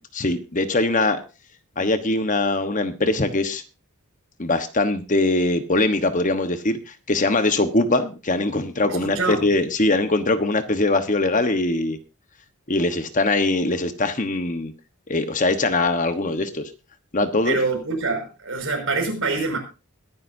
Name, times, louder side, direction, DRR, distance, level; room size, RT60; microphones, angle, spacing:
voice 1, 0.1-1.2 1.8-3.6 4.4-12.0 12.7-14.7 15.1-16.7 17.1-17.6, left 2 dB, 35° left, 9 dB, 1.2 m, -22 dB
voice 2, 8.9-9.4 17.4-19.6, right 3 dB, 60° right, 2 dB, 5.8 m, -25 dB
22.0 x 11.0 x 2.7 m, 0.31 s
head